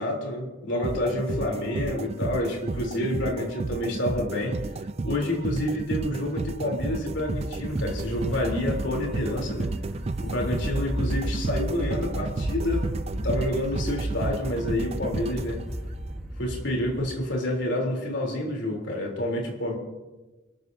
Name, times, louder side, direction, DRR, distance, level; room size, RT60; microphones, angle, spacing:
voice 1, 0.0-4.6 5.0-9.7 10.2-12.9 13.2-15.6 16.4-19.8, left 1 dB, 70° left, 0 dB, 3.4 m, -28 dB
sound 1, 0.8-16.1, right 3 dB, 30° right, 0.4 m, -32 dB
sound 2, 6.8-17.2, equal, ahead, 1.3 m, -34 dB
28.0 x 13.0 x 2.7 m, 1.2 s
head